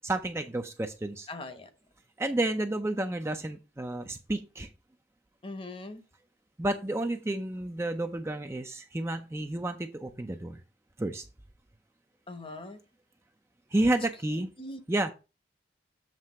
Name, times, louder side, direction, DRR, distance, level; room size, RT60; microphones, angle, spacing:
voice 1, 0.0-1.3 2.2-4.7 6.6-10.6 11.0-11.2 13.7-14.5 14.9-15.1, right 1 dB, 15° right, 0.4 m, -30 dB
voice 2, 1.3-1.7 5.4-6.0 12.3-12.8 14.3-14.8, left 2 dB, 30° left, 0.9 m, -41 dB
7.5 x 3.3 x 6.1 m
head